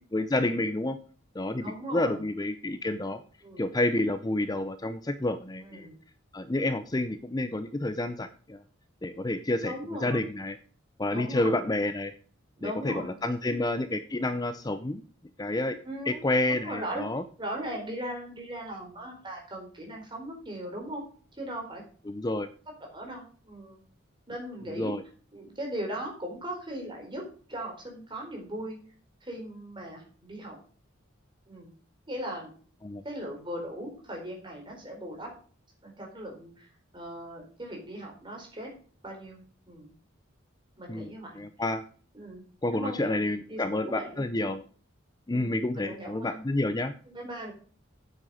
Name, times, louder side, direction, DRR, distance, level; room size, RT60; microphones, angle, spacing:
voice 1, 0.1-1.0 1.3-1.6 1.9-3.2 3.6-5.9 6.3-8.6 9.0-10.6 11.0-12.1 12.6-15.0 15.4-15.8 16.1-17.2 22.1-22.5 24.7-25.0 32.8-33.0 40.9-41.8 42.6-44.6 45.3-46.9, left 2 dB, 20° left, 10 dB, 0.5 m, -29 dB
voice 2, 1.6-2.2 3.4-3.6 5.6-5.9 9.6-10.2 11.1-11.7 12.6-13.6 15.8-17.0 17.4-21.0 21.4-21.8 22.9-23.8 24.3-24.9 25.3-27.2 27.5-28.8 29.2-30.6 31.5-31.7 32.1-32.5 33.0-35.3 35.8-36.7 36.9-38.7 39.0-39.4 39.7-39.9 40.8-41.4 42.1-42.4 42.7-44.2 45.3-46.4 47.1-47.5, right 1 dB, 25° right, 0 dB, 4.3 m, -38 dB
9.7 x 7.7 x 4.9 m, 0.43 s
head